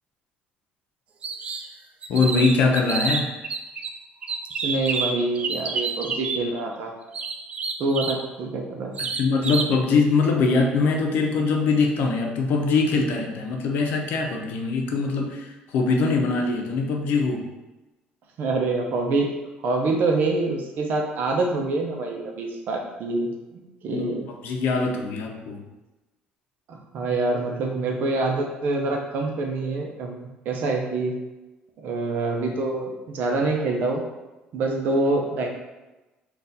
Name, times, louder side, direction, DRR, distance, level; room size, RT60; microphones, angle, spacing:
sound 1, 1.2-1.7 2.0-3.9 4.2-6.4 7.1-8.2 8.9-9.7, right 5 dB, 35° right, 0.4 m, -29 dB
voice 1, 2.1-3.3 9.0-15.5 15.7-17.5 23.9-24.2 24.4-25.6, left 4 dB, 70° left, 2 dB, 0.7 m, -22 dB
voice 2, 4.6-6.9 7.8-8.9 18.4-19.3 19.6-24.3 26.7-31.1 31.8-34.0 34.5-35.5, right 3 dB, 60° right, 1 dB, 0.8 m, -26 dB
4.0 x 2.5 x 4.0 m, 1.1 s
cardioid pair, 135°, 3 cm